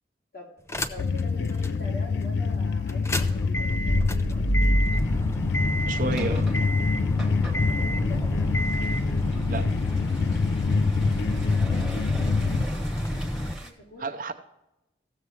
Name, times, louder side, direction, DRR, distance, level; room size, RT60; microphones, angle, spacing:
voice 1, 0.3-4.5 7.6-8.3 13.5-14.1, left 2 dB, 50° left, -3 dB, 3.0 m, -44 dB
sound 1, 0.7-1.2 1.6-1.7 2.9-13.5, equal, 15° left, 0.5 m, -28 dB
sound 2, 1.0-12.7, left 5 dB, 75° left, 0.3 m, -26 dB
sound 3, 3.0-3.1 3.5-3.7 4.8-13.7, equal, ahead, 1.3 m, -43 dB
voice 2, 5.9-6.5 9.5-9.7 14.0-14.3, right 2 dB, 50° right, 6 dB, 0.7 m, -30 dB
15.5 x 7.3 x 3.2 m, 0.91 s
head